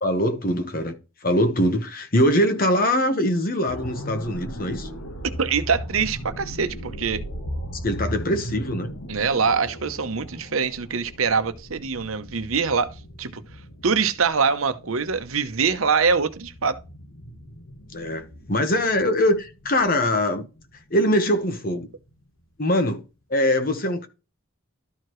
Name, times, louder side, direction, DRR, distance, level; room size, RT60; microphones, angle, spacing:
voice 1, 0.0-4.9 7.7-8.9 17.9-20.5 20.9-21.9 22.6-23.0 23.3-24.1, equal, 45° left, 1.1 m, -22 dB
sound 1, 3.7-21.5 21.9-22.1, equal, 80° left, 1.6 m, -38 dB
voice 2, 5.4-7.2 9.1-12.9 13.2-13.4 13.8-16.8, right 5 dB, 85° right, 0.9 m, -24 dB
12.5 x 4.7 x 3.1 m
head